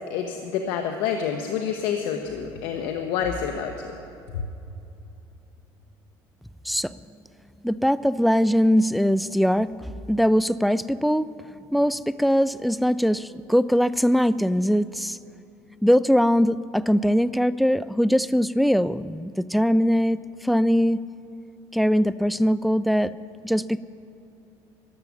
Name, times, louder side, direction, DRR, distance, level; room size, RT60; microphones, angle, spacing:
voice 1, 0.1-3.8 4.3-4.4, left 7 dB, 85° left, 5 dB, 0.9 m, -28 dB
voice 2, 7.6-11.3 11.7-15.2 15.8-21.0 21.7-23.1 23.4-23.8, equal, ahead, 17 dB, 0.3 m, -21 dB
13.5 x 11.0 x 7.1 m, 2.8 s
cardioid pair, 120°, 9 cm